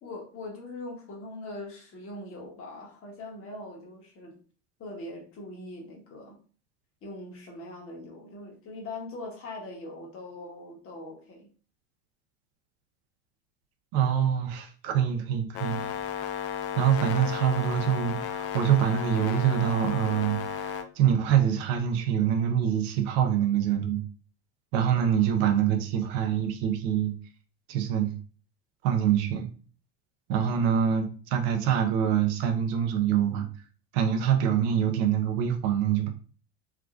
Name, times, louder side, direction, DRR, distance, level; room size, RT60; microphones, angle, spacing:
voice 1, 0.0-4.4 4.8-6.4 7.0-11.5, left 2 dB, 40° left, 0 dB, 1.4 m, -41 dB
voice 2, 13.9-15.8 16.8-24.0 24.7-27.1 27.7-28.1 28.8-29.5 30.3-33.5 33.9-36.1, right 9 dB, 70° right, 5 dB, 0.8 m, -25 dB
sound 1, 15.5-20.8, left 7 dB, 65° left, 0.6 m, -33 dB
3.7 x 2.4 x 2.4 m, 0.40 s
supercardioid pair, 100°, 33 cm